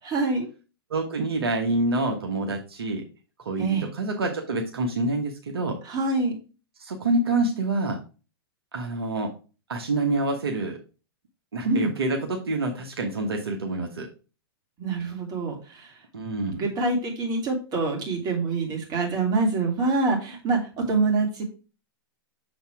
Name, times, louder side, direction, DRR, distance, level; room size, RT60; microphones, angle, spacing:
voice 1, 0.0-0.5 3.6-3.9 5.8-6.4 11.6-11.9 14.8-15.9 16.6-20.6 20.9-21.4, right 3 dB, 30° right, 1 dB, 2.8 m, -25 dB
voice 2, 0.9-3.1 3.4-5.8 6.8-8.0 8.7-9.3 9.7-10.8 11.5-14.1 16.1-16.7, right 2 dB, 75° right, 1 dB, 1.3 m, -27 dB
6.9 x 4.2 x 4.7 m, 0.33 s
hypercardioid pair, 110°, 13 cm